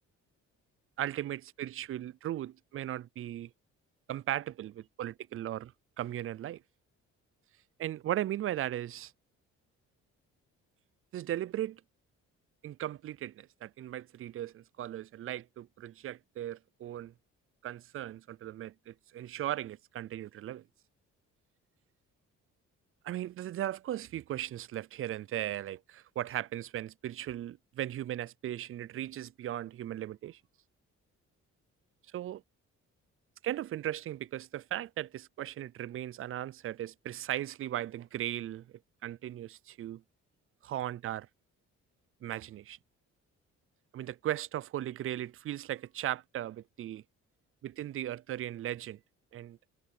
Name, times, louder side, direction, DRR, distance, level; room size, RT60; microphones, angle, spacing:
voice 1, 1.0-3.5 4.1-5.7 6.0-6.6 7.8-9.1 11.1-11.8 12.6-17.1 17.6-20.6 23.0-30.4 32.1-32.4 33.4-38.7 39.0-40.0 40.6-41.3 42.2-42.8 43.9-47.0 47.6-49.0 49.3-49.6, right 12 dB, 45° right, 0.4 m, -37 dB
cardioid pair, 90°, 30 cm